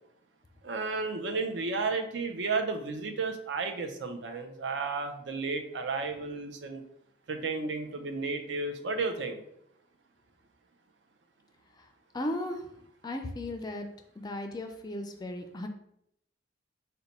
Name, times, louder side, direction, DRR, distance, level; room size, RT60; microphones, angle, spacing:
voice 1, 0.6-6.8 7.3-9.4, right 4 dB, 70° right, 6 dB, 0.5 m, -33 dB
voice 2, 12.1-12.7 13.0-13.9 14.2-15.7, left 1 dB, 20° left, 5 dB, 0.3 m, -36 dB
4.0 x 2.2 x 4.1 m, 0.74 s
head